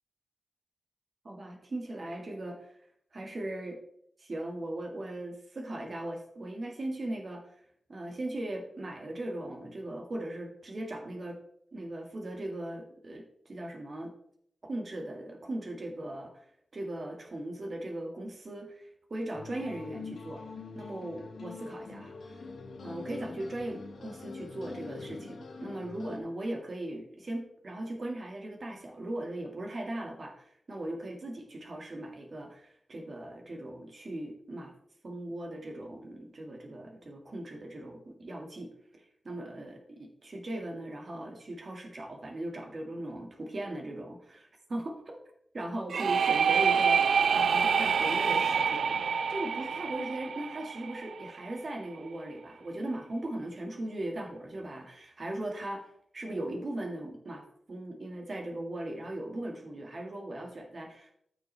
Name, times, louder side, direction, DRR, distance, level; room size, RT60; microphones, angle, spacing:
voice 1, 1.2-2.8 3.1-3.8 4.2-7.5 7.9-11.4 11.7-14.1 14.6-16.4 16.7-20.4 20.7-22.5 22.8-34.7 35.0-45.2 45.5-47.0 47.3-61.1, right 1 dB, 45° right, 2 dB, 2.0 m, -39 dB
sound 1, 19.3-26.2, left 4 dB, 90° left, 1.3 m, -44 dB
sound 2, 45.9-51.6, right 6 dB, 85° right, 0.4 m, -27 dB
14.0 x 6.1 x 3.4 m, 0.70 s
wide cardioid pair, 120°, 0 cm